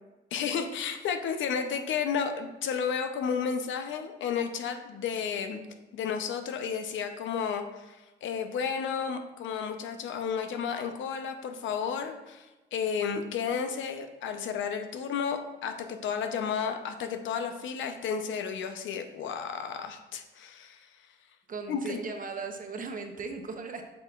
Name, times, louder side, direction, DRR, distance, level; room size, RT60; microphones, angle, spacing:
voice 1, 0.3-5.6 5.9-20.9 21.7-22.0, left 6 dB, 75° left, 7 dB, 0.7 m, -32 dB
voice 2, 21.5-23.8, right 4 dB, 45° right, 5 dB, 0.9 m, -37 dB
7.6 x 5.7 x 2.4 m, 1.1 s
cardioid pair, 90°, 20 cm